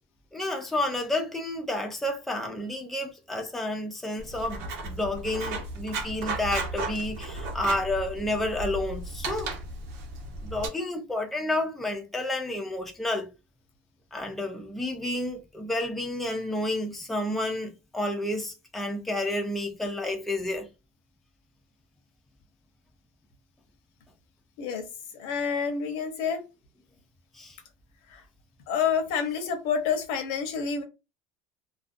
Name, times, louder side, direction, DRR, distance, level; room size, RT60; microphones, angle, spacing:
voice 1, 0.3-9.5 10.4-13.3 14.1-20.7 27.3-27.6, left 1 dB, 5° left, 0.4 m, -30 dB
Writing, 4.2-10.7, right 3 dB, 60° right, 0.8 m, -35 dB
voice 2, 25.2-26.4 28.1-28.2 28.7-30.8, left 6 dB, 70° left, 0.8 m, -28 dB
2.4 x 2.3 x 2.5 m
cardioid pair, 145°, 5 cm